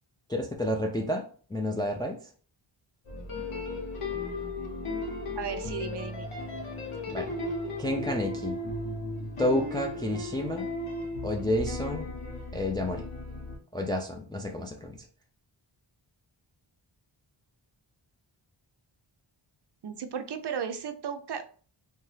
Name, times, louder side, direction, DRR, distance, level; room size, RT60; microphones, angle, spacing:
voice 1, 0.3-1.2 1.5-2.2 7.1-7.3 7.8-8.6 9.4-10.7 11.2-12.1 12.5-13.1 13.7-15.0, left 1 dB, 10° left, 1 dB, 0.4 m, -30 dB
sound 1, 3.1-13.6, left 2 dB, 85° left, 0.9 m, -35 dB
voice 2, 5.4-6.3 19.8-21.5, right 7 dB, 60° right, 8 dB, 0.5 m, -35 dB
2.7 x 2.2 x 3.2 m, 0.42 s
wide cardioid pair, 50°, 49 cm